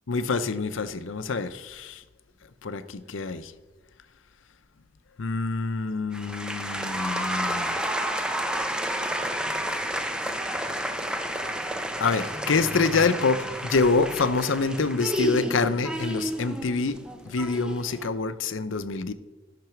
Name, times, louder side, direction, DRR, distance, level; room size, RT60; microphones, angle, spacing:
voice 1, 0.1-2.0 2.6-3.5 5.2-7.8 12.0-17.0 17.2-19.1, left 4 dB, 80° left, 12 dB, 0.7 m, -26 dB
sound 1, 6.1-18.1, equal, 5° right, 0.6 m, -31 dB
12.0 x 6.0 x 5.8 m, 1.1 s
head